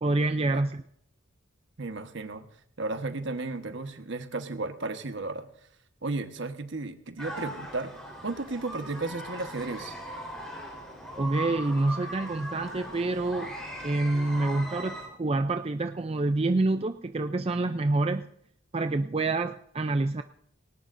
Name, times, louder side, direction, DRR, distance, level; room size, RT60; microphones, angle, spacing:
voice 1, 0.0-0.8 11.2-13.5 13.8-18.3 18.7-20.2, right 2 dB, 30° right, 8 dB, 0.4 m, -27 dB
voice 2, 1.8-2.5 2.8-5.5 6.0-7.9 8.2-10.0, right 3 dB, 60° right, 8 dB, 1.3 m, -34 dB
funfair France people screaming, 7.2-15.1, equal, 5° left, 4.0 m, -39 dB
18.5 x 18.5 x 2.6 m, 0.69 s
head